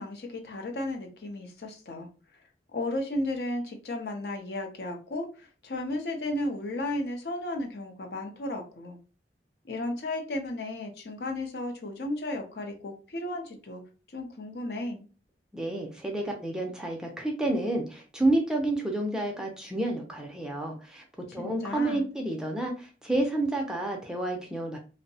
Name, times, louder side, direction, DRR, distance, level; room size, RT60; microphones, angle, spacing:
voice 1, 0.0-2.1 2.7-9.0 9.6-13.8 14.1-15.0 21.4-22.1, left 1 dB, 65° left, 3 dB, 0.5 m, -34 dB
voice 2, 15.5-21.0 21.3-24.8, right 2 dB, 5° right, 0 dB, 0.4 m, -29 dB
2.6 x 2.1 x 2.6 m, 0.35 s
head